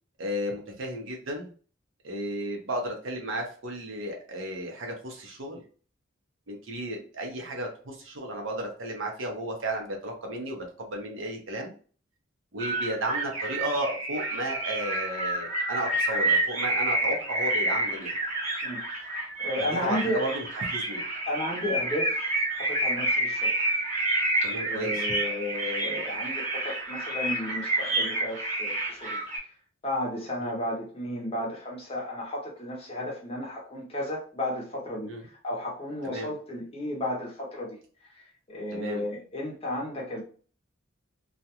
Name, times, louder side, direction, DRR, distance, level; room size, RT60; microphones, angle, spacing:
voice 1, 0.2-1.5 2.0-5.6 6.5-11.7 12.5-18.2 19.8-21.0 24.4-25.1 30.4-30.5 35.0-35.2 36.0-36.3 38.7-39.0, right 1 dB, 75° right, 2 dB, 0.7 m, -33 dB
sound 1, 12.6-29.4, right 2 dB, 35° right, 0.9 m, -29 dB
voice 2, 19.4-20.2 21.3-22.2 22.6-23.5 24.6-29.2 29.8-35.1 35.4-37.8 38.1-40.2, left 1 dB, 30° left, -1 dB, 0.7 m, -33 dB
2.4 x 2.1 x 2.8 m, 0.41 s
head